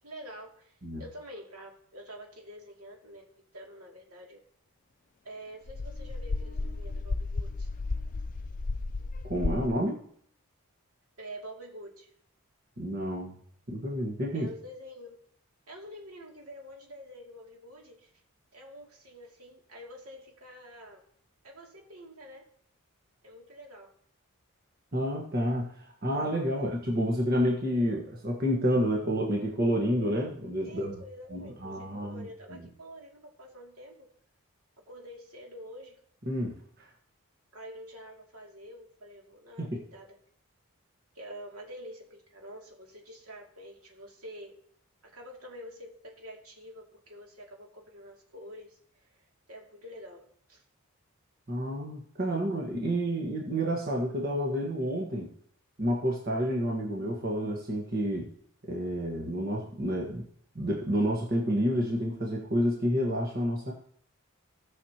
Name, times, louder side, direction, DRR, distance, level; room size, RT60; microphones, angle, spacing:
voice 1, 0.0-4.4 5.2-7.7 11.2-12.1 14.3-15.2 15.7-18.1 18.5-21.0 21.4-22.5 23.2-23.9 26.5-26.7 30.6-34.1 34.9-36.0 37.5-40.2 41.1-44.6 45.0-50.6 52.2-52.4, equal, 80° right, -1 dB, 2.6 m, -47 dB
sound 1, 5.7-9.7, left 3 dB, 35° left, 0.4 m, -33 dB
voice 2, 9.2-10.0 12.8-13.3 13.7-14.5 24.9-31.0 31.3-32.6 36.3-36.9 39.6-39.8 51.5-55.3 55.8-58.3 58.6-60.3 60.5-63.7, equal, 45° right, -1 dB, 1.5 m, -29 dB
17.5 x 6.4 x 2.9 m, 0.62 s
head